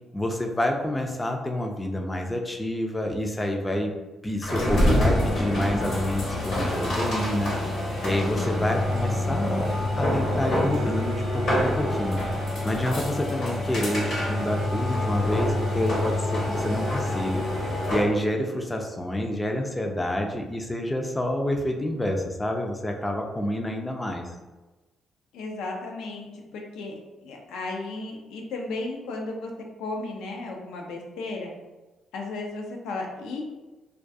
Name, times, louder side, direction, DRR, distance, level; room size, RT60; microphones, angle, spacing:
voice 1, 0.1-3.9 4.2-12.2 12.6-17.5 17.9-24.3, left 1 dB, 15° left, 2 dB, 0.3 m, -28 dB
sound 1, 4.4-18.1, left 1 dB, 70° left, 0.9 m, -26 dB
voice 2, 25.3-26.9 27.2-29.5 29.8-31.5 32.1-33.4, left 2 dB, 90° left, 1 dB, 0.4 m, -34 dB
2.3 x 2.3 x 2.5 m, 1.1 s
cardioid pair, 90°, 0 cm